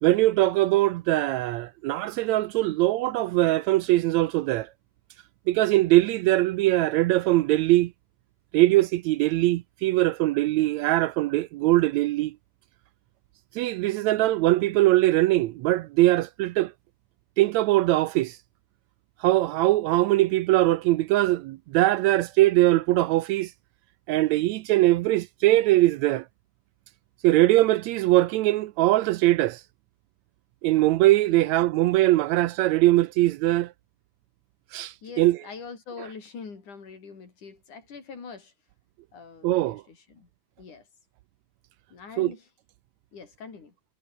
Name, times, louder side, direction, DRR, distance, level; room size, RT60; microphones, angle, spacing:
voice 1, 0.0-4.7 5.5-7.9 8.5-12.4 13.6-16.7 17.4-18.4 19.2-23.5 24.1-26.3 27.2-29.6 30.6-33.7 34.7-35.4 39.4-39.8 42.2-42.3, right 17 dB, 80° right, 1.7 m, -21 dB
voice 2, 35.0-38.5 39.1-40.3 40.6-40.9 41.9-42.5 43.1-43.8, left 5 dB, 80° left, 6.1 m, -43 dB
omnidirectional pair, 3.5 m